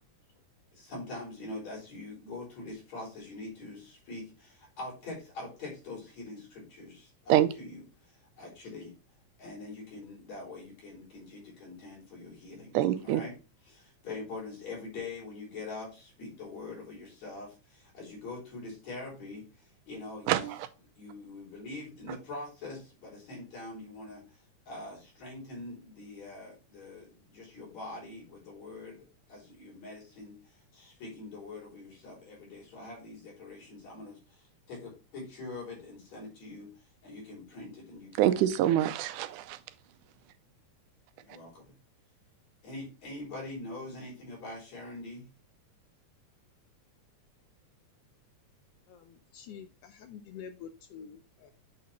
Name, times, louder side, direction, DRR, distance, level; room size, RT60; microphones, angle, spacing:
voice 1, 0.7-8.9 9.4-13.4 13.7-20.5 21.0-38.5 41.2-41.7 42.6-45.3, left 2 dB, 60° left, 5.1 m, -44 dB
voice 2, 12.7-13.2 20.3-20.6 38.2-39.6, right 12 dB, 90° right, 2.2 m, -25 dB
voice 3, 48.9-51.5, left 7 dB, 80° left, 1.4 m, -47 dB
8.6 x 4.1 x 4.1 m
omnidirectional pair, 3.5 m